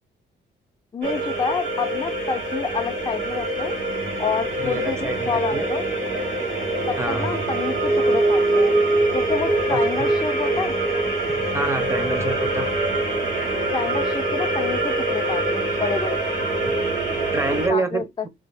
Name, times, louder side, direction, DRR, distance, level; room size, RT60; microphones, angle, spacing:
voice 1, 0.9-3.7 4.2-5.8 6.9-8.7 9.1-10.7 13.7-16.2 17.7-18.0, left 5 dB, 25° left, 0.5 m, -28 dB
sound 1, 1.0-17.7, right 2 dB, 65° right, 1.8 m, -24 dB
voice 2, 4.6-5.6 7.0-7.3 9.7-10.1 11.5-12.7 17.3-18.3, right 3 dB, 15° right, 0.7 m, -27 dB
3.4 x 2.3 x 3.3 m
cardioid pair, 90°, 20 cm